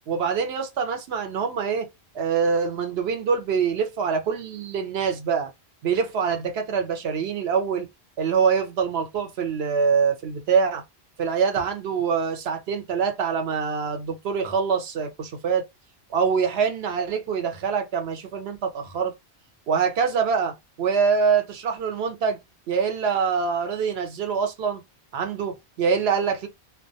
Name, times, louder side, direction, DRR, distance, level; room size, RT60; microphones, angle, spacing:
voice 1, 0.1-1.9 2.1-5.5 5.8-7.9 8.2-10.8 11.2-15.6 16.1-19.1 19.7-22.4 22.7-24.8 25.1-26.5, right 6 dB, 75° right, 0.9 m, -24 dB
2.2 x 2.2 x 2.6 m
omnidirectional pair, 1.1 m